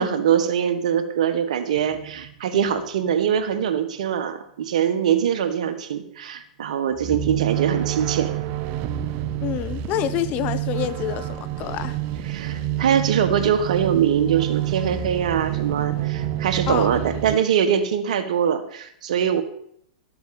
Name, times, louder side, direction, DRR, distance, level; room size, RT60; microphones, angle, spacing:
voice 1, 0.0-8.3 12.3-19.4, right 8 dB, 70° right, 9 dB, 1.6 m, -23 dB
sound 1, 1.7-3.0 6.9-17.4, right 12 dB, 45° right, 0.9 m, -28 dB
voice 2, 9.4-12.0 16.7-17.0, left 12 dB, 40° left, 14 dB, 1.0 m, -27 dB
13.0 x 7.9 x 7.1 m, 0.70 s
hypercardioid pair, 115°, 4 cm